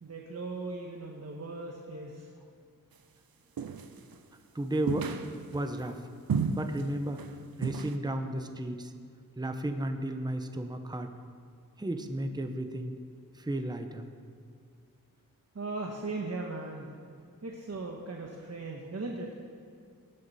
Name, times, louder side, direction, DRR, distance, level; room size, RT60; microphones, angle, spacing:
voice 1, 0.0-2.3 15.5-16.9 17.4-19.3, right 3 dB, 45° right, 0 dB, 1.2 m, -38 dB
sound 1, 3.6-4.1 4.9-5.7 6.3-6.8 7.1-7.3 7.6-8.0, right 6 dB, 75° right, 0.8 m, -32 dB
voice 2, 4.5-5.1 5.5-6.0 6.4-7.2 7.6-8.9 9.4-11.1 11.8-12.9 13.4-14.0, right 1 dB, 10° right, 7 dB, 0.8 m, -33 dB
17.5 x 10.5 x 4.2 m, 2.3 s
wide cardioid pair, 105°, 36 cm